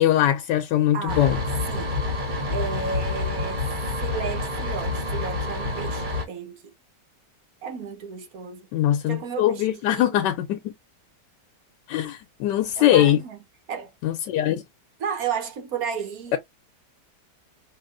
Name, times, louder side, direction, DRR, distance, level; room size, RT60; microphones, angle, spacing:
voice 1, 0.0-1.4 8.7-10.7 11.9-13.2 14.0-14.6 16.3-16.4, left 12 dB, 90° left, 1.2 m, -21 dB
voice 2, 0.9-1.3 1.7-2.0 2.5-3.7 4.0-6.6 7.6-8.7 9.1-10.3 12.8-13.4 13.7-13.9 15.0-16.4, right 6 dB, 60° right, 1.4 m, -33 dB
sound 1, 1.1-6.2, left 2 dB, 30° right, 1.3 m, -28 dB
4.9 x 2.9 x 2.5 m
omnidirectional pair, 1.8 m